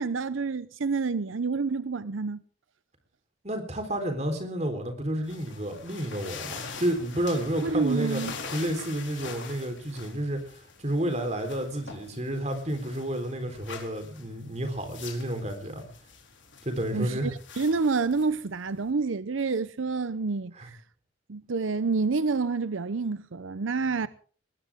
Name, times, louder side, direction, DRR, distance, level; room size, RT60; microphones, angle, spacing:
voice 1, 0.0-2.4 7.6-8.3 16.9-20.8 21.3-24.1, right 4 dB, 85° right, 0.7 m, -28 dB
voice 2, 3.4-8.2 8.5-15.8 16.6-17.3 20.6-20.7, right 1 dB, 35° right, 3.9 m, -30 dB
sound 1, 5.2-18.9, left 5 dB, 75° left, 4.2 m, -44 dB
20.5 x 19.5 x 3.6 m
head